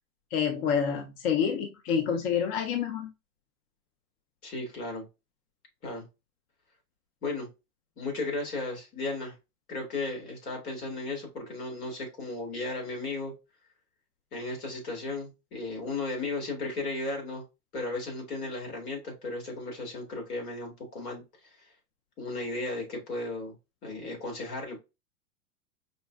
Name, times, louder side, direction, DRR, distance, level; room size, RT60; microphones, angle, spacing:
voice 1, 0.3-3.1, left 7 dB, 40° left, 0.6 m, -28 dB
voice 2, 4.4-5.0 5.8-6.0 7.2-7.5 8.0-9.3 9.7-13.3 14.3-17.4 17.7-21.2 22.2-23.5 23.8-24.8, left 2 dB, 70° left, 2.2 m, -35 dB
5.2 x 2.1 x 2.3 m
hypercardioid pair, 110°, 47 cm